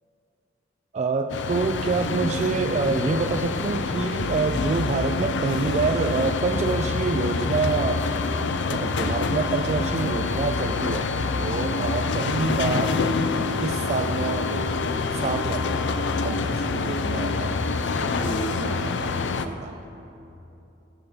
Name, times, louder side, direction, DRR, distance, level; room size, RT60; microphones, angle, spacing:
voice 1, 0.9-8.1 8.7-11.1 11.4-13.1 13.6-14.7 15.1-15.9 16.2-17.6 18.0-19.8, right 4 dB, 40° right, 6 dB, 0.3 m, -27 dB
sound 1, 1.3-19.5, left 4 dB, 70° left, 0.5 m, -26 dB
13.5 x 7.0 x 5.3 m, 2.9 s
head